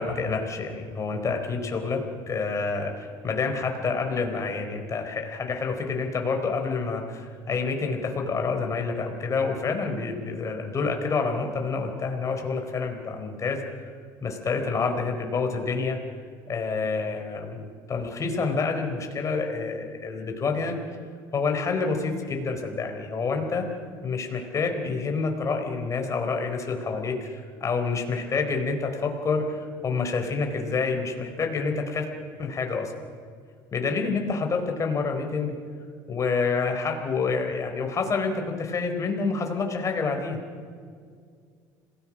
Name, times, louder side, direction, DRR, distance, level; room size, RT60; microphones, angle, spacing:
voice 1, 0.0-13.6 14.2-16.0 16.5-17.6 17.9-20.8 21.3-23.7 24.0-32.1 32.4-32.9 33.7-35.6 36.1-40.4, left 4 dB, 30° left, 4 dB, 4.2 m, -28 dB
26.5 x 18.5 x 6.3 m, 2.1 s
supercardioid pair, 100°, 10 cm